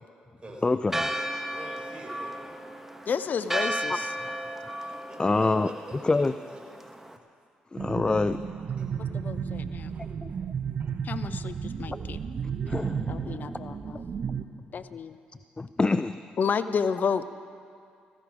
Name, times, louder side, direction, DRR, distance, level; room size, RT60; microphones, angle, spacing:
voice 1, 0.6-1.1 3.9-4.0 5.2-5.7 6.0-6.3 7.7-8.4 10.2-10.3 11.8-11.9 12.7-13.6 15.6-16.2, left 3 dB, 25° left, 13 dB, 0.4 m, -26 dB
Church bell, 0.9-7.2, right 1 dB, 10° right, 1.2 m, -34 dB
voice 2, 1.5-2.6 4.8-6.2 6.5-6.6 8.8-8.9 10.0-10.1, right 2 dB, 25° right, -2 dB, 4.2 m, -45 dB
voice 3, 3.1-4.1 9.1-9.9 11.0-12.2 13.1-14.0 14.7-15.2 16.4-17.2, left 6 dB, 55° left, 12 dB, 0.7 m, -30 dB
sound 1, 7.8-14.4, right 7 dB, 50° right, 0.8 m, -33 dB
17.0 x 14.5 x 4.9 m, 2.3 s
hypercardioid pair, 50°, 4 cm